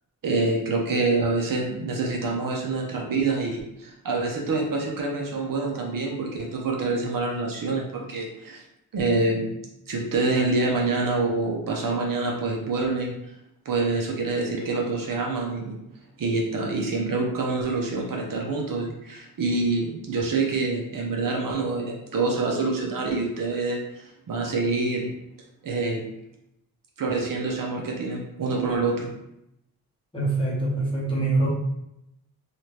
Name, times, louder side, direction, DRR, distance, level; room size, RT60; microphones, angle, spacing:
voice 1, 0.2-8.6 8.9-9.5 9.9-13.1 13.7-15.8 16.2-25.1 25.6-26.1 27.0-29.1, right 3 dB, 60° right, 0 dB, 0.6 m, -26 dB
voice 2, 30.1-31.5, right 2 dB, 15° left, -7 dB, 0.9 m, -24 dB
2.9 x 2.4 x 3.1 m, 0.83 s
wide cardioid pair, 165°, 38 cm